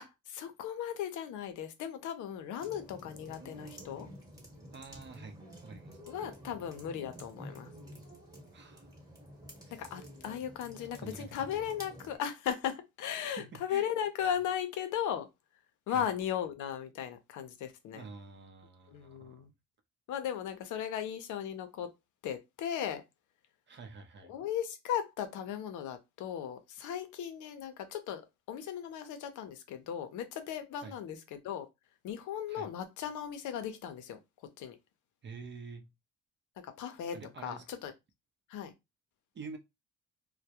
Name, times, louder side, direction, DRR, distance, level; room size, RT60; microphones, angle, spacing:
voice 1, 0.0-4.1 6.1-7.7 9.7-15.3 15.9-18.0 18.9-19.5 20.1-21.9 22.2-23.0 24.3-28.2 28.5-31.7 32.0-34.2 34.6-34.8 36.6-37.2 37.4-37.9 38.5-38.7, left 9 dB, 80° left, 0.6 m, -37 dB
sound 1, 2.6-12.2, equal, 10° right, 1.0 m, -50 dB
voice 2, 4.7-6.0 8.5-9.0 9.6-10.0 11.0-11.5 13.3-13.9 15.9-16.1 17.9-19.5 23.7-24.3 30.8-31.0 32.5-32.7 35.2-35.9 37.1-37.8 39.3-39.6, right 4 dB, 40° right, 0.5 m, -48 dB
2.2 x 2.1 x 2.8 m
cardioid pair, 90°, 30 cm